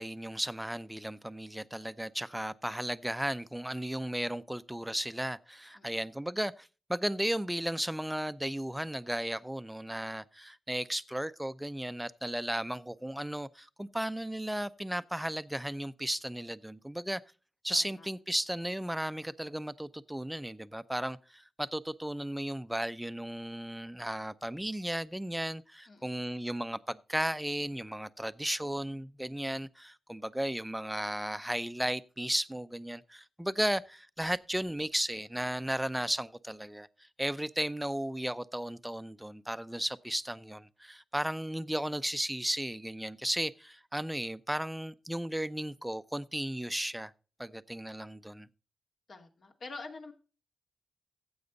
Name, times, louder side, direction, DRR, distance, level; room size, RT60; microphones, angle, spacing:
voice 1, 0.0-17.2 17.6-47.1 47.4-48.5, right 1 dB, 5° right, 0.6 m, -35 dB
voice 2, 5.8-6.1 17.7-18.1 25.9-26.2 47.9-48.0 49.1-50.1, left 3 dB, 60° left, 2.5 m, -47 dB
15.0 x 7.9 x 4.0 m
cardioid pair, 80°, 0 cm